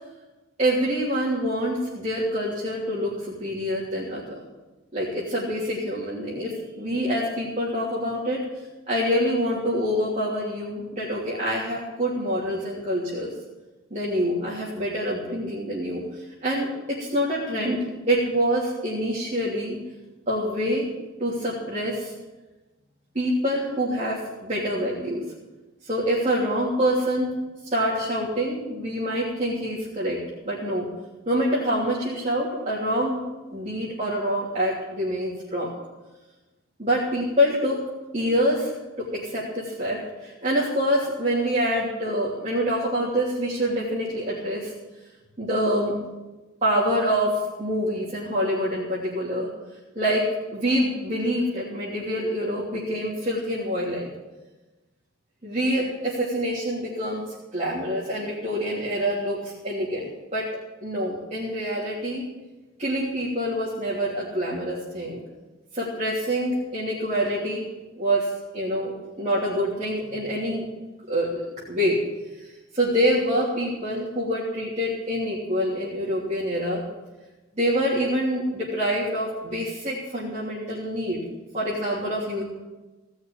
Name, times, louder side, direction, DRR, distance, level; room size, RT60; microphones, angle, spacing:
voice 1, 0.6-4.4 4.9-8.4 8.9-13.3 13.9-19.8 20.3-20.9 21.2-22.1 23.1-25.2 25.8-27.4 27.6-30.2 30.4-30.9 31.3-33.2 33.5-35.7 36.8-37.8 38.1-44.7 45.4-45.9 46.6-49.5 49.9-54.1 55.4-57.2 57.5-60.5 60.8-62.2 62.8-65.2 65.7-67.7 68.0-70.6 71.1-72.0 72.4-76.8 77.6-81.2 81.5-82.4, equal, 35° right, -7 dB, 3.1 m, -26 dB
17.5 x 6.4 x 9.0 m, 1.1 s
head